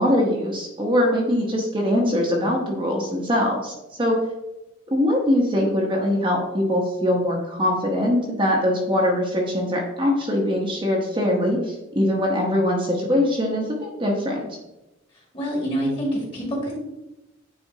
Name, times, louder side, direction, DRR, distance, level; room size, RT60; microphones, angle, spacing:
voice 1, 0.0-3.7 4.0-4.2 4.9-14.5, left 1 dB, 25° right, -2 dB, 1.0 m, -22 dB
voice 2, 15.3-16.8, equal, 25° left, -3 dB, 2.0 m, -26 dB
8.9 x 4.2 x 2.8 m, 0.96 s
head